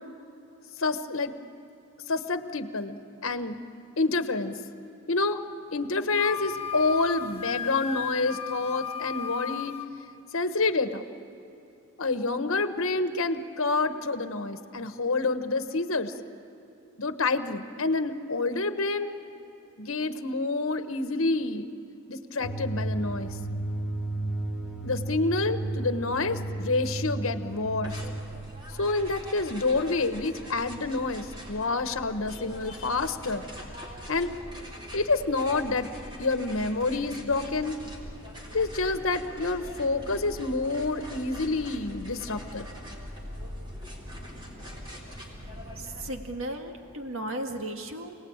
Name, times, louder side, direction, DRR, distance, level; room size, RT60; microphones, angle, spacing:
voice 1, 0.8-1.3 2.1-3.0 3.2-3.6 4.0-4.5 5.1-5.4 5.7-9.8 10.3-11.0 12.0-16.1 17.0-19.1 19.8-21.7 22.1-23.3 24.8-28.0 28.8-33.4 34.1-34.3 34.9-35.9 36.2-37.8 38.5-42.7, left 3 dB, 75° left, 9 dB, 1.2 m, -28 dB
Wind instrument woodwind instrument, 6.1-9.9, left 8 dB, 25° left, 1.3 m, -35 dB
sound 1, 22.4-28.2, right 2 dB, 5° right, 2.8 m, -33 dB
sound 2, 27.8-46.1, equal, 20° right, 3.8 m, -42 dB
voice 2, 45.8-48.2, right 1 dB, 70° right, 4 dB, 1.9 m, -35 dB
29.0 x 19.0 x 8.8 m, 2.9 s
head